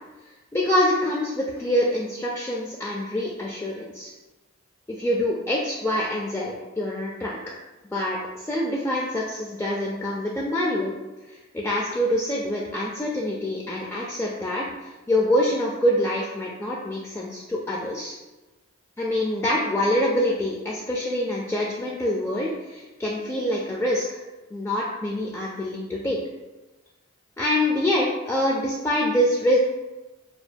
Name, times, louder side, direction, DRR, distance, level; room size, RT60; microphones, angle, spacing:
voice 1, 0.5-4.1 4.9-7.4 7.9-8.2 8.4-10.9 11.5-18.1 19.0-24.2 24.5-26.2 27.4-29.6, left 1 dB, 10° left, -3 dB, 0.3 m, -25 dB
6.7 x 2.6 x 2.2 m, 1.1 s
head